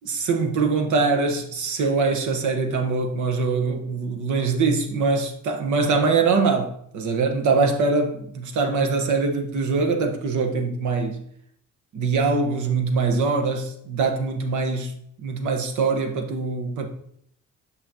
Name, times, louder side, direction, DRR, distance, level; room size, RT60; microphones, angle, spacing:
voice 1, 0.0-11.2 11.9-14.9 15.2-16.9, right 4 dB, 75° right, 1.0 m, -23 dB
6.3 x 5.6 x 2.8 m
cardioid pair, 90°, 30 cm